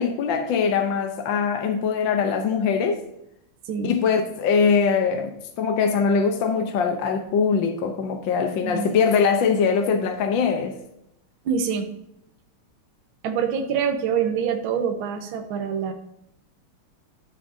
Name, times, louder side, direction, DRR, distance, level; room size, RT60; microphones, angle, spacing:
voice 1, 0.0-3.0 3.8-10.8, left 6 dB, 65° left, 1.5 m, -22 dB
voice 2, 8.5-8.9 11.4-11.9 13.2-15.9, right 7 dB, 70° right, 1.7 m, -25 dB
13.5 x 6.6 x 2.7 m
omnidirectional pair, 2.3 m